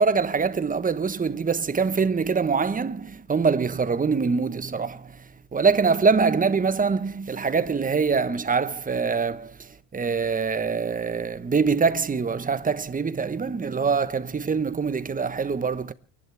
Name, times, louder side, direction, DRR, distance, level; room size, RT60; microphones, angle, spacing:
voice 1, 0.0-15.9, right 5 dB, 20° right, 1.2 m, -24 dB
29.5 x 11.5 x 3.5 m
hypercardioid pair, 80°, 45 cm